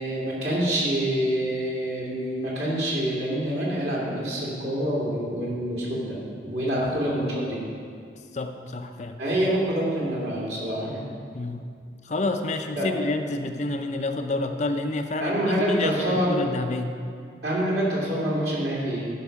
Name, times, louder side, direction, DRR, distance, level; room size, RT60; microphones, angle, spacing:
voice 1, 0.0-7.6 9.2-11.1 12.8-12.9 15.2-16.4 17.4-19.1, right 1 dB, 65° right, -6 dB, 2.8 m, -26 dB
voice 2, 8.3-9.2 11.3-11.6 12.0-15.4 15.7-16.9, left 2 dB, 40° left, 6 dB, 0.5 m, -29 dB
11.5 x 5.3 x 5.9 m, 2.3 s
head